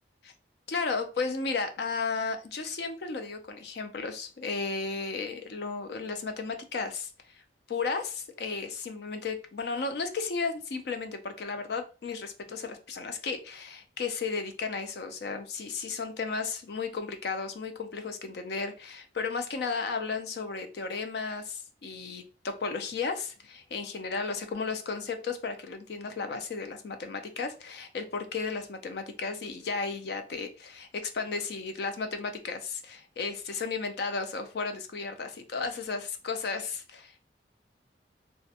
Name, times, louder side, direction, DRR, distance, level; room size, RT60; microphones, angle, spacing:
voice 1, 0.7-7.1 7.7-37.2, left 4 dB, 60° left, 0.4 m, -34 dB
2.4 x 2.1 x 2.7 m
head